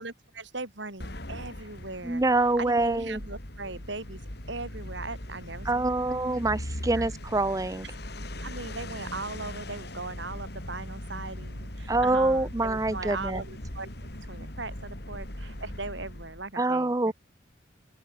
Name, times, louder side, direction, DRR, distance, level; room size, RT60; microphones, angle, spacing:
voice 1, 0.0-2.2 2.6-4.2 4.5-6.2 6.9-7.1 7.8-8.0 8.4-17.1, right 3 dB, 65° right, 3.9 m, -39 dB
sound 1, 1.0-16.5, left 1 dB, 55° left, 4.2 m, -39 dB
voice 2, 2.0-3.2 5.6-7.9 11.9-13.4 16.6-17.1, right 2 dB, 15° right, 0.6 m, -25 dB
open air
head